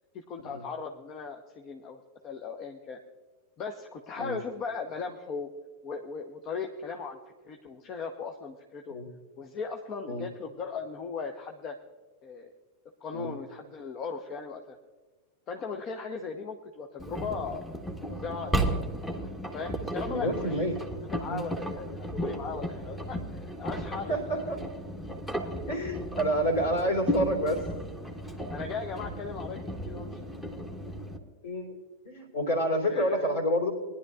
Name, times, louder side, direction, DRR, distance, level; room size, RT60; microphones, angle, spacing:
voice 1, 0.1-3.0 3.6-5.5 5.8-7.2 7.4-9.0 9.4-11.8 12.2-12.5 13.0-14.8 15.5-17.6 18.1-18.8 19.5-20.6 21.1-24.5 28.5-30.2 32.8-33.3, left 5 dB, 35° left, 4 dB, 0.9 m, -38 dB
Engine, 17.0-31.2, equal, 5° left, 1.3 m, -35 dB
voice 2, 20.0-20.8 21.3-21.4 24.1-24.6 25.7-27.6 31.4-31.8 32.0-33.7, equal, 55° left, 1 dB, 3.3 m, -28 dB
21.5 x 11.0 x 2.5 m, 1.3 s
figure-of-eight pair, 90°, 0 cm